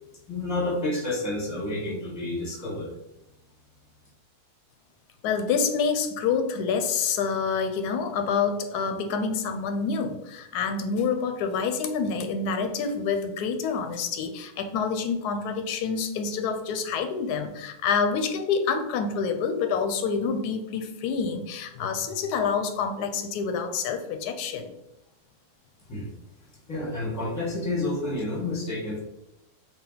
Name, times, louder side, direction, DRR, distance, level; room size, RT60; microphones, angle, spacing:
voice 1, 0.3-2.9 25.9-26.1 26.7-29.0, left 2 dB, 15° left, -3 dB, 0.9 m, -29 dB
voice 2, 5.2-24.7, left 5 dB, 85° left, 5 dB, 1.1 m, -27 dB
3.8 x 2.3 x 3.8 m, 0.88 s
omnidirectional pair, 1.6 m